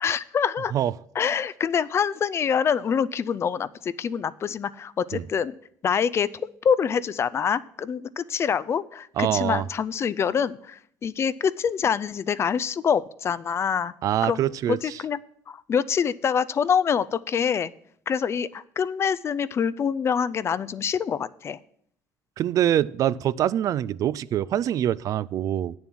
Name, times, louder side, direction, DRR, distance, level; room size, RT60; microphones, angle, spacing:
voice 1, 0.0-0.7 1.1-5.6 5.8-13.9 14.2-14.4 14.7-15.2 15.5-17.7 18.1-21.6, left 7 dB, 40° left, 17 dB, 0.4 m, -25 dB
voice 2, 9.2-9.6 14.0-14.8 22.4-25.7, right 11 dB, 55° right, 19 dB, 0.3 m, -24 dB
9.0 x 7.1 x 6.1 m, 0.66 s
cardioid pair, 95°, 7 cm